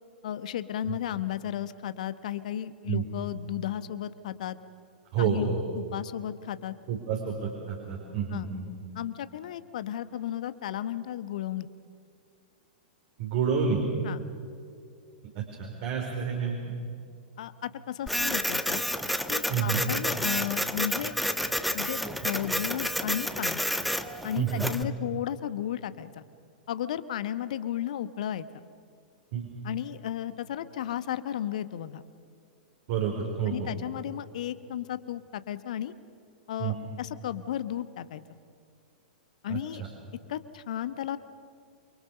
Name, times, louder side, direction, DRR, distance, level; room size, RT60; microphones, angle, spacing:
voice 1, 0.2-4.6 5.2-6.7 8.3-8.5 8.9-11.7 14.0-14.3 17.4-18.8 19.3-21.1 21.7-23.6 24.2-26.2 26.7-28.5 29.6-32.0 33.5-35.9 36.5-38.2 39.4-39.8 40.3-41.2, left 11 dB, 55° left, 13 dB, 1.1 m, -34 dB
voice 2, 5.1-5.6 6.9-8.7 13.2-13.8 15.3-16.6 19.5-19.8 24.4-24.6 29.3-29.5 32.9-33.7 36.6-36.7 39.5-39.9, right 7 dB, 45° right, 0 dB, 4.5 m, -29 dB
Printer, 18.1-24.8, equal, ahead, 1.3 m, -30 dB
28.5 x 24.0 x 6.6 m, 2.4 s
figure-of-eight pair, 100°, 5 cm